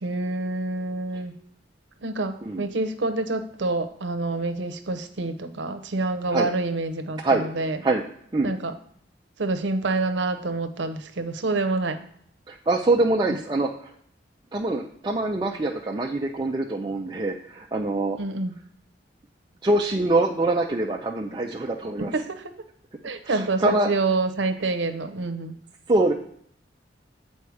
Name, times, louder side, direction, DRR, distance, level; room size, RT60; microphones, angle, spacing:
voice 1, 0.0-1.3 2.0-7.8 8.4-8.7 9.4-12.0 18.2-18.6 22.0-22.5 23.0-25.6, right 3 dB, 80° right, 8 dB, 0.7 m, -27 dB
voice 2, 12.5-13.7 14.5-18.2 19.6-22.1 23.2-23.9 25.9-26.1, right 2 dB, 25° right, 0 dB, 0.5 m, -24 dB
8.2 x 4.3 x 4.8 m, 0.66 s
head